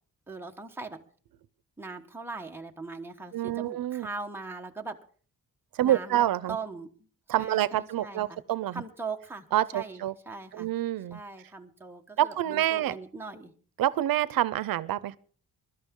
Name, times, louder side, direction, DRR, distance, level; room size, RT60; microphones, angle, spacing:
voice 1, 0.3-1.0 1.8-5.0 5.8-6.2 6.5-7.1 7.4-8.4 8.7-9.5 9.7-10.7 11.1-13.5, right 4 dB, 5° right, 1.2 m, -40 dB
voice 2, 3.3-4.1 5.7-6.6 7.3-8.8 9.5-10.1 10.5-11.2 12.2-13.0 13.8-15.2, right 13 dB, 85° right, 0.6 m, -27 dB
22.0 x 12.0 x 3.7 m
wide cardioid pair, 165°, 34 cm